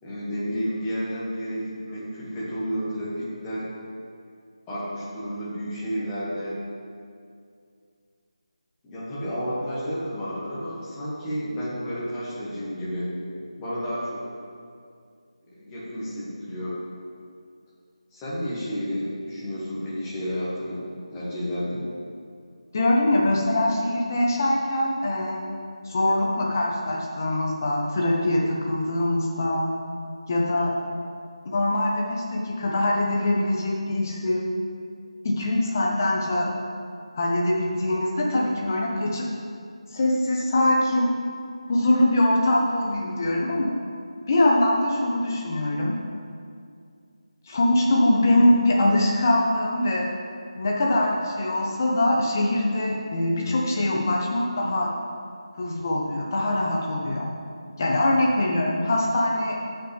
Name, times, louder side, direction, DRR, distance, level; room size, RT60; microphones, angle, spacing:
voice 1, 0.0-3.7 4.7-6.6 8.8-13.1 13.6-14.2 15.5-16.8 18.1-20.9 21.1-21.9, equal, 10° left, -10 dB, 2.0 m, -31 dB
voice 2, 22.7-25.4 25.8-29.7 30.3-30.7 31.4-34.5 35.2-36.5 37.1-39.3 39.9-41.1 41.7-43.7 44.3-46.0 47.5-50.1 50.6-54.9 55.6-57.3 57.8-59.6, left 1 dB, 30° left, -2 dB, 1.3 m, -23 dB
16.0 x 5.8 x 3.5 m, 2.3 s
figure-of-eight pair, 160°, 3 cm